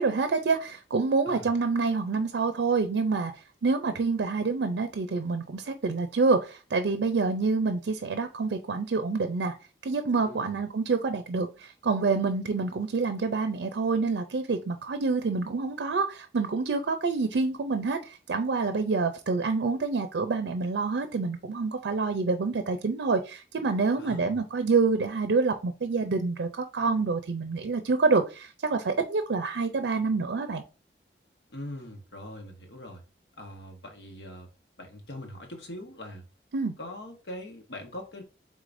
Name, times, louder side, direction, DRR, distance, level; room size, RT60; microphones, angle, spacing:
voice 1, 0.0-3.3 3.6-9.5 9.8-30.6 36.5-36.7, right 4 dB, 85° right, 0.5 m, -27 dB
voice 2, 10.2-10.6 24.0-24.4 31.5-33.0 33.4-34.5 34.8-36.2 36.8-38.2, left 1 dB, 80° left, 1.1 m, -42 dB
4.9 x 3.7 x 2.5 m
head